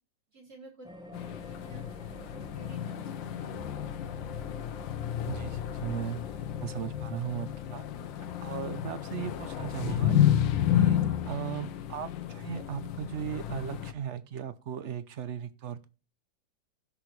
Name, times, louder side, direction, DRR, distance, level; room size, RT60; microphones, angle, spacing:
voice 1, 0.3-0.9 1.2-3.6 4.0-4.1, right 3 dB, 50° right, -2 dB, 5.1 m, -53 dB
sound 1, 0.8-10.7, left 1 dB, 5° right, 0.9 m, -50 dB
sound 2, 1.1-13.9, left 11 dB, 80° left, 1.5 m, -31 dB
voice 2, 5.3-6.3 6.6-7.9 8.2-10.2 10.7-11.0 11.3-15.9, right 8 dB, 70° right, 13 dB, 0.6 m, -37 dB
16.0 x 6.4 x 3.2 m, 0.33 s
omnidirectional pair, 2.0 m